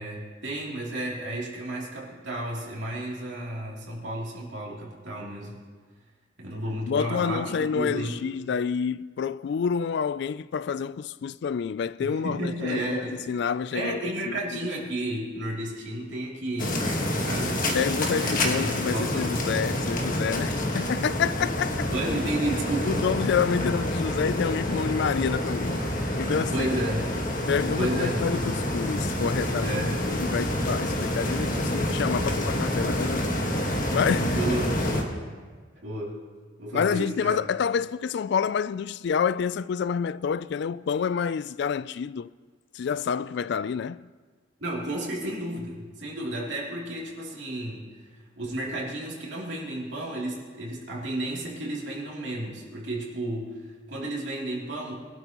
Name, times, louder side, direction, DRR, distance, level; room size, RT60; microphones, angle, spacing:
voice 1, 0.0-5.5 6.4-8.2 12.0-13.2 13.7-19.4 21.9-23.0 26.5-27.0 27.8-28.2 29.6-30.0 34.3-35.2 35.8-36.2 36.6-37.4 44.6-47.9 48.4-53.6 53.9-54.9, right 1 dB, 70° right, 3.0 m, -32 dB
voice 2, 6.9-14.6 17.7-21.9 22.8-26.7 27.5-33.4 33.6-34.4 36.7-42.3 42.7-44.1, left 6 dB, 65° left, 0.3 m, -28 dB
sound 1, 16.6-35.0, left 1 dB, 45° left, 1.6 m, -28 dB
22.5 x 12.0 x 3.0 m
head